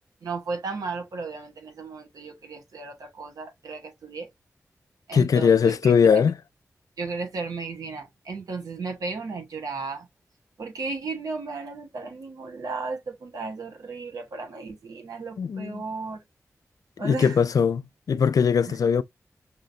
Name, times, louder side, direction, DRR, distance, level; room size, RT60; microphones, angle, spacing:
voice 1, 0.2-4.3 5.1-6.3 7.0-10.1 10.6-16.2 17.0-17.4 18.6-18.8, right 4 dB, 85° right, 1.2 m, -34 dB
voice 2, 5.1-6.3 15.4-15.8 17.0-19.0, left 6 dB, 75° left, 0.4 m, -20 dB
5.6 x 2.1 x 2.6 m
cardioid pair, 40°, 6 cm